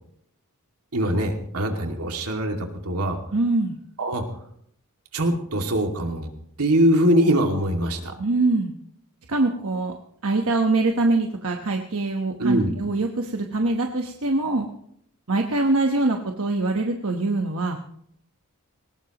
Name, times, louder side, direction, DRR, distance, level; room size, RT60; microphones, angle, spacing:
voice 1, 0.9-3.2 4.0-4.2 5.1-6.3 6.6-8.1 12.4-12.7, right 1 dB, 85° right, 3 dB, 2.4 m, -22 dB
voice 2, 3.3-3.8 8.2-8.7 9.3-9.9 10.2-14.7 15.3-17.8, right 2 dB, 65° right, 3 dB, 1.2 m, -23 dB
20.0 x 19.0 x 3.0 m, 0.70 s
head